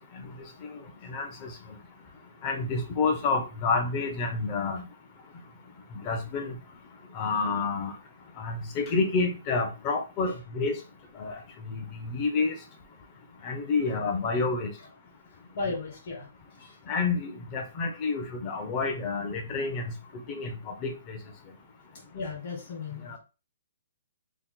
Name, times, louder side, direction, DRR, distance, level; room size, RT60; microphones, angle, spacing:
voice 1, 1.1-1.5 2.4-4.8 6.1-6.5 7.1-7.9 8.4-10.8 11.2-11.3 11.7-12.6 13.4-14.7 16.9-19.9 20.3-20.9 23.1-23.2, left 4 dB, 25° left, 5 dB, 0.5 m, -29 dB
voice 2, 15.5-16.3 16.6-16.8 22.1-23.2, left 4 dB, 40° left, 0 dB, 1.2 m, -35 dB
2.9 x 2.1 x 3.6 m, 0.31 s
hypercardioid pair, 165°, 0 cm